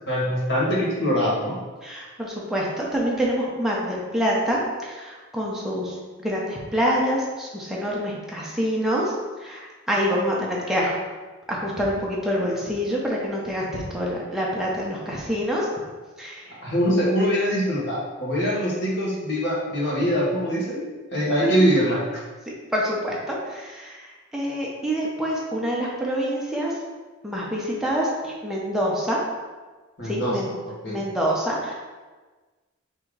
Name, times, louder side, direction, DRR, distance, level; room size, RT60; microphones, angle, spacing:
voice 1, 0.1-1.5 16.6-22.2 30.0-30.4 30.8-31.0, equal, 55° left, -5 dB, 1.2 m, -23 dB
voice 2, 1.8-9.1 9.4-10.9 11.5-15.7 16.2-16.5 21.4-21.6 22.7-24.1 24.3-26.8 27.2-29.2 30.0-30.5 30.9-31.7, equal, ahead, -5 dB, 0.7 m, -26 dB
3.6 x 2.7 x 4.7 m, 1.3 s
head